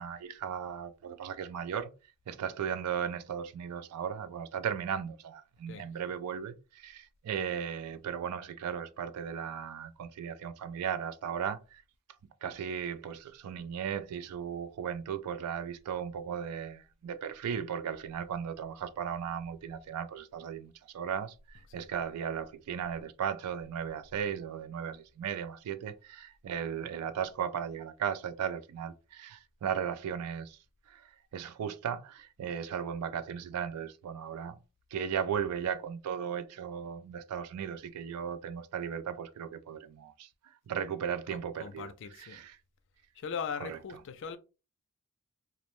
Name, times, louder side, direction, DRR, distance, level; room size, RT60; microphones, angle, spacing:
voice 1, 0.0-1.9 2.3-11.8 12.4-21.3 21.7-30.6 30.9-31.0 31.3-34.6 34.9-40.3 40.7-41.9 42.2-42.5, right 8 dB, 85° right, 0.3 m, -36 dB
voice 2, 41.3-42.4 43.2-44.4, left 6 dB, 55° left, 0.4 m, -40 dB
2.6 x 2.1 x 3.0 m
head